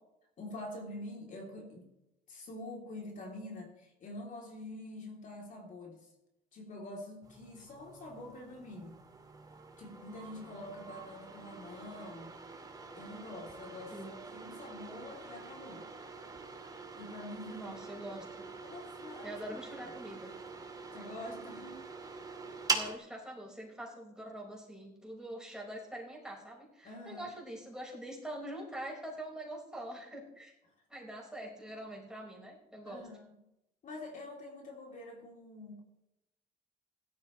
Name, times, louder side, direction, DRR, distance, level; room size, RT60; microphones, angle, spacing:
voice 1, 0.4-1.9 2.3-6.1 6.5-9.0 9.8-12.3 12.9-15.9 17.0-17.7 18.6-19.4 19.8-20.0 20.9-21.8 22.4-22.5 26.8-27.3 32.9-33.2 33.8-35.8, left 1 dB, 50° left, 0 dB, 3.5 m, -46 dB
sound 1, 7.2-23.0, right 4 dB, 20° right, 2.4 m, -43 dB
voice 2, 17.5-18.4 19.2-20.3 22.7-30.5 30.9-33.1, right 1 dB, 5° right, -2 dB, 5.3 m, -44 dB
16.5 x 13.0 x 3.3 m, 0.88 s
cardioid pair, 110°, 17 cm